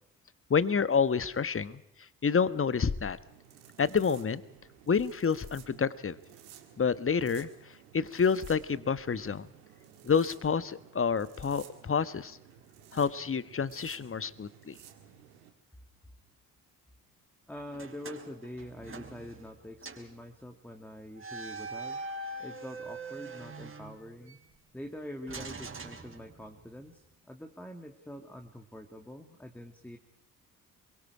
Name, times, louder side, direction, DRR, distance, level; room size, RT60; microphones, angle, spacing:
voice 1, 0.5-1.8 2.2-3.2 3.8-4.4 4.9-6.2 6.8-7.5 7.9-9.5 10.0-12.4 12.9-14.7, left 6 dB, 30° left, 16 dB, 1.4 m, -28 dB
sound 1, 3.2-15.5, right 9 dB, 85° right, 2.1 m, -55 dB
voice 2, 17.5-22.0 22.4-24.4 24.7-30.0, left 1 dB, 5° left, 5 dB, 2.3 m, -45 dB
sound 2, 17.7-19.6 19.8-20.1 21.2-24.4 25.3-26.7, right 3 dB, 30° right, 4.6 m, -42 dB
28.0 x 23.0 x 4.9 m, 0.79 s
hypercardioid pair, 45°, 43 cm